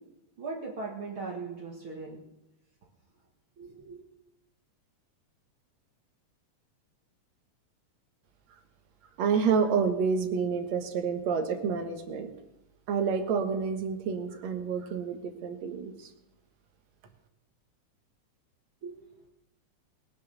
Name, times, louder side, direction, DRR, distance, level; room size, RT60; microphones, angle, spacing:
voice 1, 0.4-2.2 3.6-4.0 18.8-19.0, right 4 dB, 50° right, -1 dB, 2.4 m, -39 dB
voice 2, 9.2-12.3 12.9-16.1, right 6 dB, 65° right, 6 dB, 2.6 m, -29 dB
21.0 x 7.1 x 6.8 m, 0.89 s
omnidirectional pair, 3.4 m